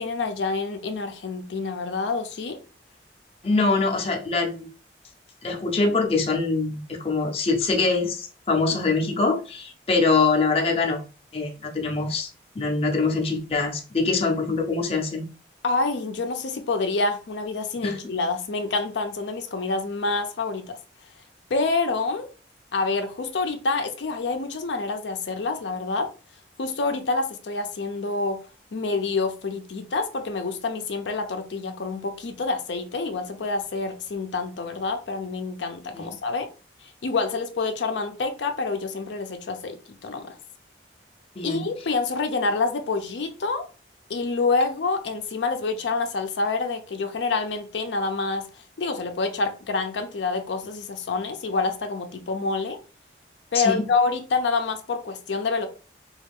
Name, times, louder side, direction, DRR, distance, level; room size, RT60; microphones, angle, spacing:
voice 1, 0.0-2.6 15.6-20.8 21.5-22.3 22.7-26.1 26.6-28.4 28.7-36.5 36.8-40.4 41.4-43.6 44.1-48.5 48.8-52.8 53.5-55.7, left 3 dB, 80° left, 0.5 m, -27 dB
voice 2, 3.4-4.7 5.4-11.0 11.3-12.3 12.6-15.2 17.8-18.0 35.9-36.1 41.4-41.6 53.5-53.8, left 3 dB, 30° left, 0.5 m, -24 dB
3.3 x 2.3 x 3.4 m
head